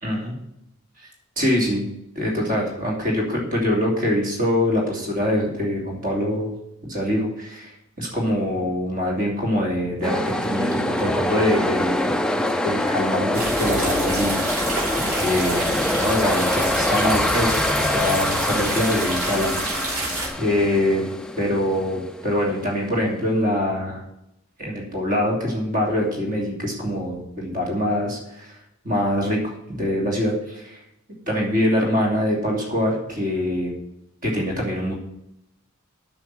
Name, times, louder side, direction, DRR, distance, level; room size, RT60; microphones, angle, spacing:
voice 1, 0.0-0.3 1.0-1.1 1.4-1.9 2.1-6.5 6.8-7.7 8.0-14.4 14.9-19.6 20.4-21.0 21.4-24.0 24.6-28.5 28.8-29.4 29.7-30.8 31.3-33.8 34.2-34.9, left 1 dB, 40° right, -1 dB, 3.0 m, -24 dB
sound 1, 10.0-22.9, left 1 dB, 5° left, 0.3 m, -25 dB
sound 2, 13.3-20.3, right 2 dB, 85° right, 3.3 m, -28 dB
8.9 x 6.3 x 7.8 m, 0.81 s
head